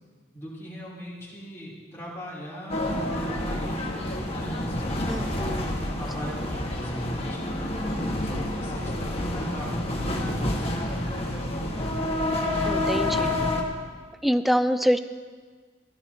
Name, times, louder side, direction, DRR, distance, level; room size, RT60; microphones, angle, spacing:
voice 1, 0.3-5.5 6.0-7.7 8.2-12.0, equal, 15° left, -8 dB, 3.4 m, -39 dB
sound 1, 2.7-13.6, left 1 dB, 35° left, 1.4 m, -28 dB
voice 2, 5.1-5.6 12.6-13.3 14.2-15.0, equal, ahead, 12 dB, 0.3 m, -25 dB
15.0 x 14.0 x 2.9 m, 1.5 s
head